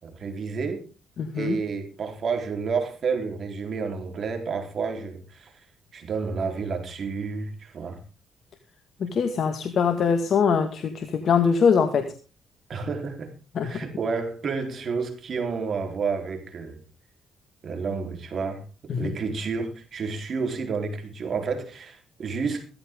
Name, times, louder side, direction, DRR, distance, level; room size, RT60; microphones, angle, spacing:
voice 1, 0.0-0.9 1.3-5.5 5.9-8.0 12.7-13.3 13.6-16.8 17.6-18.6 18.9-22.7, right 5 dB, 50° right, 4 dB, 3.9 m, -30 dB
voice 2, 1.2-1.6 9.0-12.1 13.6-13.8 18.9-19.1, left 6 dB, 60° left, 6 dB, 2.0 m, -23 dB
16.0 x 14.0 x 3.8 m, 0.34 s
cardioid pair, 90°, 0 cm